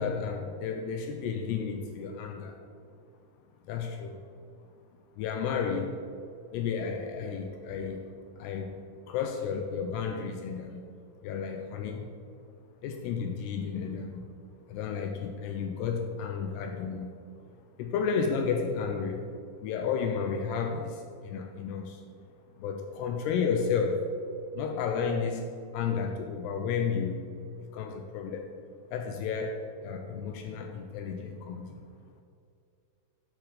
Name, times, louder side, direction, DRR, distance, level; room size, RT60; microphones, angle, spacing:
voice 1, 0.0-2.6 3.7-4.2 5.2-6.1 6.5-8.1 8.4-8.8 9.1-10.8 11.2-12.1 12.8-14.3 14.7-17.1 17.8-19.3 19.6-22.0 22.6-24.1 24.5-27.2 27.7-28.5 28.9-31.8, left 6 dB, 85° left, 5 dB, 2.4 m, -32 dB
11.0 x 6.0 x 5.0 m, 2.4 s
omnidirectional pair, 5.4 m